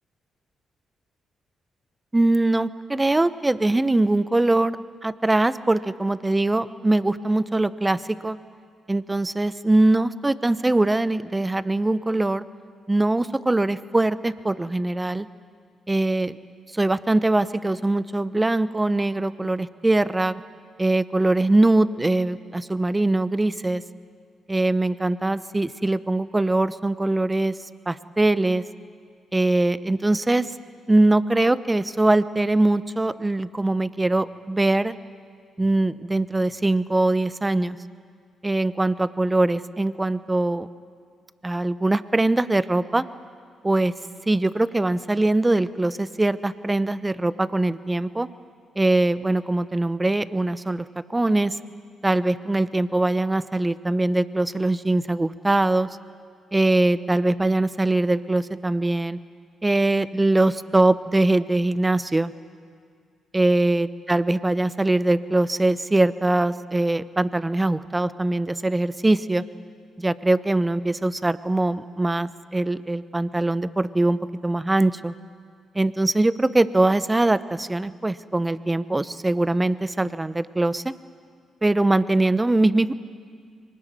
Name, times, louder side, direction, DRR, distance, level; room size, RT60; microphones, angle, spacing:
voice 1, 2.1-4.8 5.0-8.4 8.9-12.4 12.9-15.3 15.9-16.4 16.7-20.4 20.8-23.8 24.5-27.5 27.9-28.6 29.3-30.5 30.9-35.0 35.6-37.8 38.4-40.7 41.4-43.0 43.6-43.9 44.3-48.3 48.8-50.9 51.1-51.6 52.0-55.9 56.5-59.2 59.6-62.3 63.3-69.4 70.0-75.1 75.7-80.9 81.6-82.9, right 2 dB, 20° right, 15 dB, 1.0 m, -22 dB
24.0 x 20.0 x 9.4 m, 2.2 s
hypercardioid pair, 45°, 0 cm